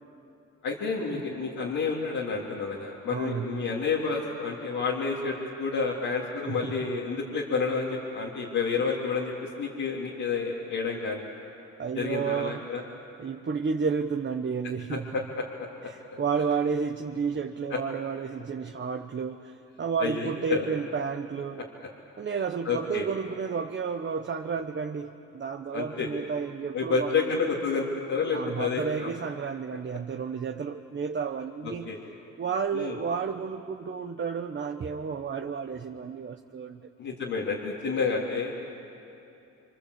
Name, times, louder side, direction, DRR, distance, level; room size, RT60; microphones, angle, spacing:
voice 1, 0.6-11.3 11.9-12.8 14.9-15.4 15.8-16.2 17.7-17.8 20.0-20.6 22.6-23.1 25.7-26.1 26.7-29.1 31.9-32.0 32.7-33.0 37.0-38.5, left 4 dB, 70° left, -5 dB, 3.3 m, -30 dB
voice 2, 3.1-3.7 6.4-6.9 11.8-12.7 13.2-15.3 15.8-21.7 22.2-27.3 28.3-31.9 32.4-37.2, right 6 dB, 40° right, 4 dB, 1.1 m, -32 dB
28.0 x 25.0 x 8.2 m, 2.8 s
cardioid pair, 90°, 30 cm